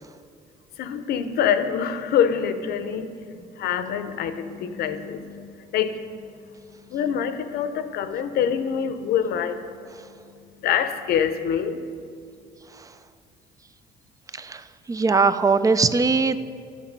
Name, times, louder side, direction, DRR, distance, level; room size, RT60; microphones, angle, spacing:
voice 1, 0.8-12.1, left 8 dB, 70° left, 10 dB, 0.7 m, -26 dB
voice 2, 14.3-16.4, right 4 dB, 20° right, 13 dB, 0.4 m, -21 dB
11.5 x 7.2 x 5.2 m, 2.3 s
cardioid pair, 110°, 17 cm